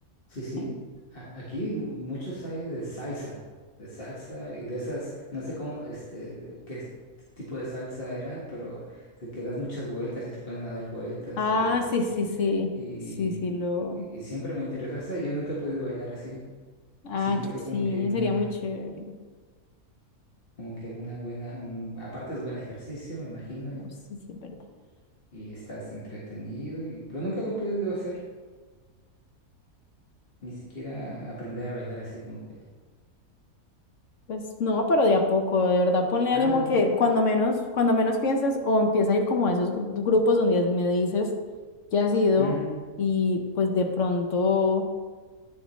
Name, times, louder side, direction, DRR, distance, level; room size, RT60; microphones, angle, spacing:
voice 1, 0.3-0.7 1.1-3.4 3.8-6.8 7.4-11.7 12.0-12.1 12.7-13.6 13.9-16.4 17.1-18.4 20.6-23.8 25.3-28.2 30.4-32.6 36.3-36.8 42.4-42.7, equal, 40° left, -6 dB, 1.6 m, -35 dB
voice 2, 11.4-12.7 13.2-14.0 17.0-17.4 17.7-18.9 24.3-24.5 34.3-41.3 41.9-42.5 43.0-44.8, left 3 dB, 60° left, 4 dB, 1.0 m, -24 dB
9.5 x 6.9 x 3.1 m, 1.4 s
omnidirectional pair, 1.5 m